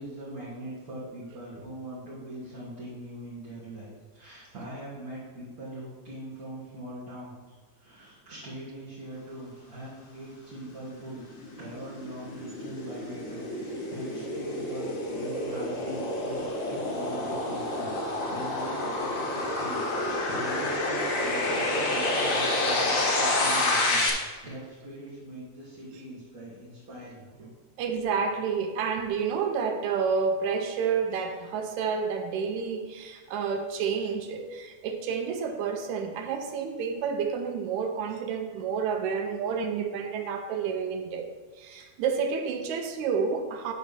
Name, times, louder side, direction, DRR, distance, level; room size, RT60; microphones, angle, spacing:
voice 1, 0.0-7.3 7.8-11.3 11.6-24.0 24.4-27.5, right 1 dB, 35° right, -10 dB, 1.7 m, -42 dB
sound 1, 10.9-24.1, left 2 dB, 70° left, 0.7 m, -29 dB
voice 2, 27.8-41.3 41.6-43.7, right 6 dB, 80° right, 5 dB, 2.2 m, -29 dB
9.2 x 3.3 x 6.7 m, 1.5 s
omnidirectional pair, 3.3 m